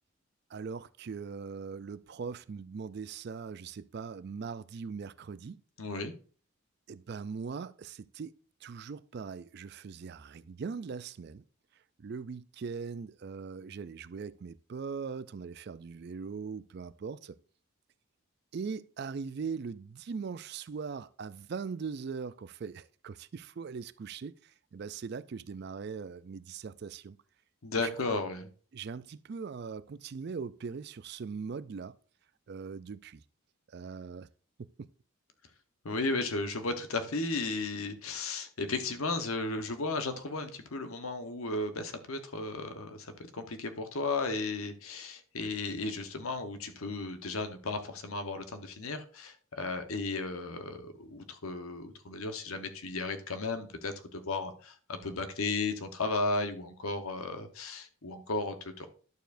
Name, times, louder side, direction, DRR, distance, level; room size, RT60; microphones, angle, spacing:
voice 1, 0.5-5.6 6.9-8.3 8.6-11.4 12.0-17.4 18.5-27.2 27.8-27.9 28.7-31.9 32.5-33.2 33.7-34.3 34.6-34.9, right 5 dB, 50° right, 0.3 m, -40 dB
voice 2, 5.8-6.1 27.6-28.5 35.8-58.9, left 3 dB, 80° left, 1.1 m, -35 dB
11.0 x 6.9 x 2.6 m
head